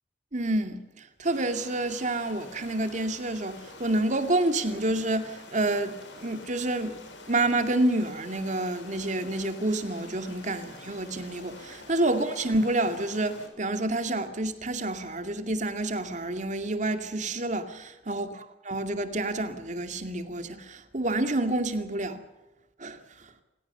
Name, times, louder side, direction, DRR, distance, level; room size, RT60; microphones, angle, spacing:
voice 1, 0.3-7.0 7.3-22.2 22.8-23.0, right 2 dB, 45° right, 2.5 m, -28 dB
sound 1, 1.2-13.5, left 3 dB, 90° left, 6.9 m, -47 dB
29.5 x 16.5 x 7.0 m
head